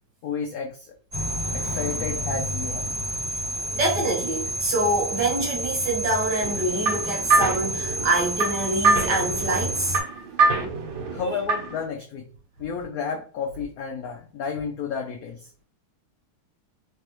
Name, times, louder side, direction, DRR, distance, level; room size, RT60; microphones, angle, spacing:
voice 1, 0.2-0.9 1.5-2.9 11.1-12.3 12.6-15.5, left 6 dB, 80° left, 0.8 m, -31 dB
sound 1, 1.1-10.0, right 1 dB, 25° right, 1.2 m, -30 dB
voice 2, 3.7-10.0, right 2 dB, 65° right, 1.4 m, -25 dB
sound 2, 6.4-11.8, right 3 dB, 80° right, 1.7 m, -25 dB
3.4 x 3.3 x 2.9 m
omnidirectional pair, 2.1 m